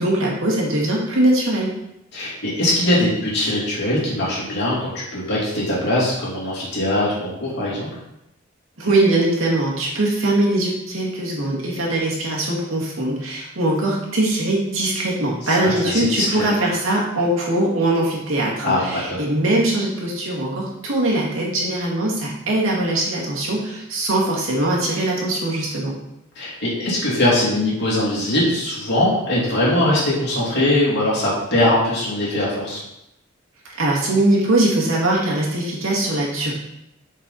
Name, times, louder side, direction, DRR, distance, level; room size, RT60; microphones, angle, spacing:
voice 1, 0.0-1.7 8.8-25.9 33.7-36.5, right 1 dB, 80° right, -3 dB, 1.9 m, -21 dB
voice 2, 2.1-7.9 15.4-16.5 18.6-19.2 26.3-32.8, left 1 dB, 55° left, -6 dB, 2.8 m, -21 dB
6.8 x 4.7 x 4.1 m, 0.85 s
head